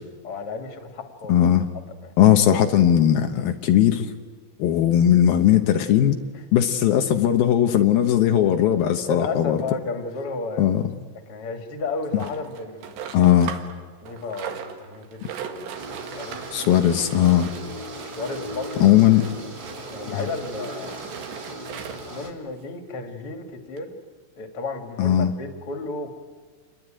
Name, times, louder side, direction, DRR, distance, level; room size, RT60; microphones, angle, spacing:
voice 1, 0.2-1.3 2.0-2.1 6.3-6.4 9.1-10.7 11.3-13.3 14.0-16.4 18.1-18.9 19.9-21.0 22.1-23.9 24.4-26.1, left 3 dB, 40° left, 5 dB, 2.3 m, -33 dB
voice 2, 1.3-1.7 2.2-4.1 4.6-6.2 6.5-9.6 10.6-10.8 13.1-13.5 16.5-17.5 18.8-19.2 20.1-20.3 25.0-25.3, left 11 dB, 90° left, 5 dB, 2.1 m, -18 dB
sound 1, 12.2-13.8 14.1-22.2 22.9-23.0 23.2-23.3 23.8-23.9, right 8 dB, 65° right, 3.7 m, -39 dB
sound 2, 15.7-22.3, right 1 dB, 20° right, 3.0 m, -38 dB
28.5 x 22.5 x 9.0 m, 1.5 s
omnidirectional pair, 5.9 m